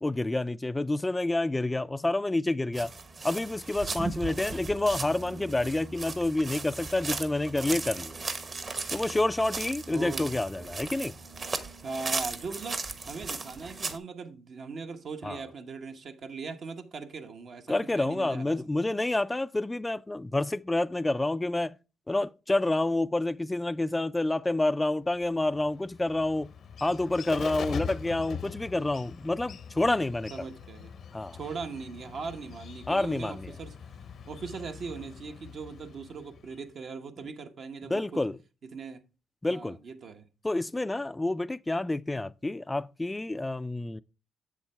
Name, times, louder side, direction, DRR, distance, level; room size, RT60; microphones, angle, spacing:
voice 1, 0.0-2.9 3.2-8.1 8.9-11.2 15.2-15.4 17.7-21.8 22.1-26.5 26.8-30.3 31.1-31.4 32.9-33.5 37.9-38.4 39.4-39.8 40.4-44.0, left 2 dB, 15° left, 0.3 m, -28 dB
sound 1, 2.7-14.0, right 3 dB, 40° right, 1.1 m, -37 dB
voice 2, 9.9-10.3 10.6-10.9 11.8-18.6 30.3-30.9 31.3-33.8 34.3-38.2 38.7-39.0 39.5-40.3, right 4 dB, 55° right, 0.9 m, -40 dB
Bird, 25.2-36.7, left 7 dB, 60° left, 0.7 m, -42 dB
7.6 x 7.1 x 3.3 m
cardioid pair, 90°, 0 cm